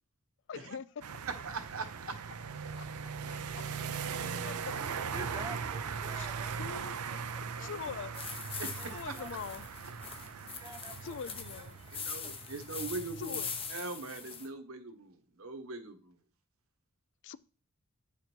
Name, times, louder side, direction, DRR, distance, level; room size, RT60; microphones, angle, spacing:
voice 1, 0.5-0.9 2.7-2.9 3.3-3.7 4.2-4.7 6.2-6.3 6.6-7.0 7.6-8.1 8.9-9.7 11.0-11.8 13.2-13.5 17.2-17.4, left 6 dB, 55° left, 0.4 m, -43 dB
sound 1, 1.0-13.7, right 6 dB, 90° right, 0.6 m, -40 dB
voice 2, 1.3-1.9 8.6-9.1 11.9-13.4 13.7-16.2, right 3 dB, 65° right, 1.2 m, -41 dB
voice 3, 4.3-7.9 8.5-8.9 9.1-9.5 10.1-11.2 11.5-12.4, right 2 dB, 15° right, 0.9 m, -50 dB
sound 2, 8.1-14.5, left 6 dB, 25° left, 0.7 m, -42 dB
9.2 x 5.1 x 4.5 m
head